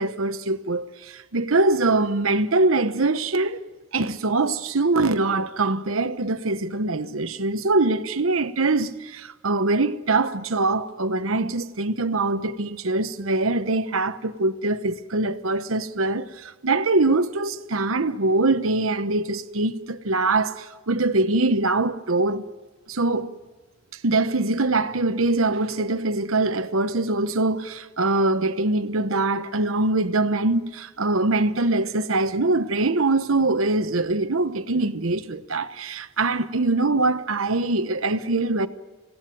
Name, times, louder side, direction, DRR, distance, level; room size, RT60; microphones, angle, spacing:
voice 1, 0.0-3.6 3.9-22.4 22.9-23.3 24.0-38.7, right 2 dB, 90° right, 1.1 m, -23 dB
25.5 x 17.5 x 9.2 m
head